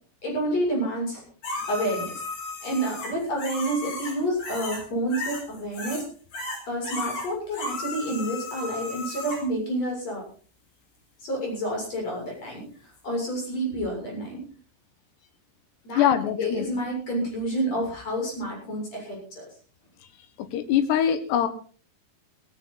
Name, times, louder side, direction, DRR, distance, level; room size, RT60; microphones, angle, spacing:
voice 1, 0.2-1.2 1.7-2.1 2.6-6.1 6.7-10.3 11.2-14.4 15.8-16.1 16.4-19.4, right 1 dB, 40° left, 0 dB, 8.2 m, -29 dB
sound 1, 1.4-4.8 5.1-6.0 6.3-9.4 13.0-13.1, left 3 dB, 65° left, 6.3 m, -34 dB
voice 2, 16.0-16.8 20.5-21.5, left 9 dB, 90° left, 10 dB, 3.6 m, -23 dB
16.5 x 16.0 x 4.1 m, 0.41 s
omnidirectional pair, 4.7 m